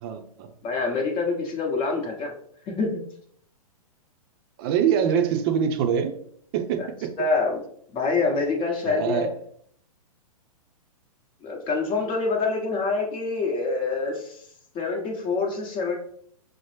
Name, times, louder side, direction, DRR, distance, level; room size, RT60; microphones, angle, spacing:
voice 1, 0.0-0.5 4.6-6.1 6.5-7.1 8.8-9.3, right 8 dB, 40° right, 7 dB, 0.6 m, -24 dB
voice 2, 0.6-2.3 2.7-3.0 6.8-6.9 7.2-7.6 7.9-9.3 11.4-14.4 14.7-15.9, left 4 dB, 25° left, 0 dB, 1.1 m, -26 dB
6.2 x 2.1 x 3.2 m, 0.64 s
hypercardioid pair, 115°, 19 cm